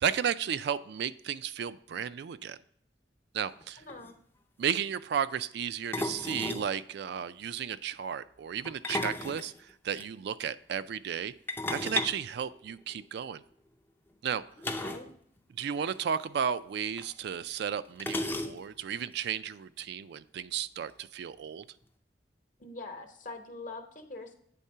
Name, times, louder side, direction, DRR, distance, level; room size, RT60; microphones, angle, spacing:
voice 1, 0.0-2.6 3.3-3.8 4.6-11.3 11.7-13.4 14.2-14.4 15.6-21.6, right 8 dB, 65° right, 14 dB, 0.3 m, -33 dB
sound 1, 3.6-3.7 3.9-4.1 5.9-6.7 8.6-10.1 11.5-13.1 14.6-15.1 15.4-15.5 15.8-16.0 17.0-17.1 18.0-18.8, left 2 dB, 10° left, 0.5 m, -34 dB
voice 2, 3.8-4.2 14.8-15.1 22.6-24.3, left 3 dB, 50° left, 5 dB, 1.0 m, -43 dB
8.5 x 3.6 x 5.5 m, 0.66 s
head